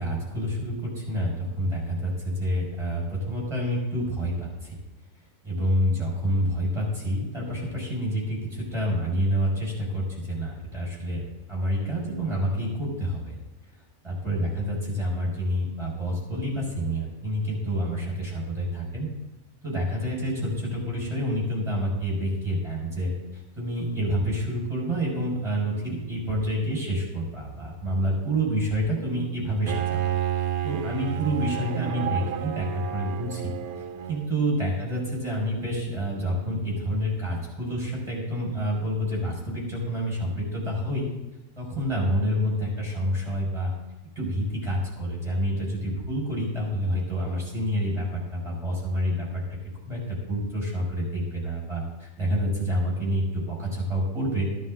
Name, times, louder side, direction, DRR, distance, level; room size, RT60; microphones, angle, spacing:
voice 1, 0.0-4.8 5.4-11.2 11.5-13.4 14.0-19.1 19.6-30.0 30.6-33.5 34.1-41.1 41.6-43.7 44.2-49.4 49.9-54.5, equal, 20° right, -4 dB, 5.6 m, -28 dB
Bowed string instrument, 29.7-34.4, right 11 dB, 80° right, 1.1 m, -30 dB
13.5 x 12.5 x 3.9 m, 1.0 s
omnidirectional pair, 1.5 m